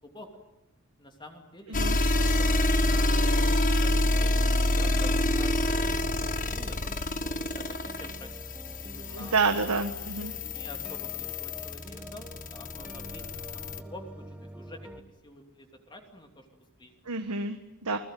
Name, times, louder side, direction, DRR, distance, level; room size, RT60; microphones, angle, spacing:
voice 1, 1.0-4.3 4.8-6.8 7.5-8.3 8.8-9.3 10.3-14.1 14.5-14.8 15.2-16.9, left 1 dB, 20° left, 3 dB, 3.0 m, -48 dB
sound 1, 1.7-13.8, left 1 dB, 35° left, 1.6 m, -27 dB
sound 2, 2.9-15.0, right 1 dB, 5° right, 1.6 m, -45 dB
voice 2, 9.1-10.3 17.1-18.0, right 4 dB, 85° right, 7 dB, 1.5 m, -28 dB
29.5 x 20.5 x 9.3 m, 0.94 s
head